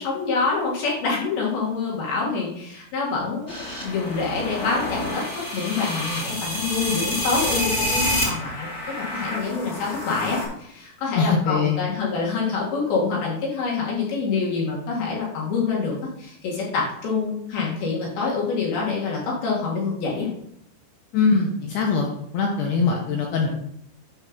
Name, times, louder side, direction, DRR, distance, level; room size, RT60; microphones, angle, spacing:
voice 1, 0.0-8.7 9.0-20.3, left 4 dB, 60° left, -4 dB, 3.2 m, -26 dB
sound 1, 3.5-10.4, left 1 dB, 30° left, 1.7 m, -28 dB
voice 2, 11.2-11.8 21.1-22.1 22.3-23.5, left 5 dB, 80° left, 0 dB, 2.4 m, -22 dB
10.0 x 3.5 x 5.9 m, 0.72 s
omnidirectional pair, 5.8 m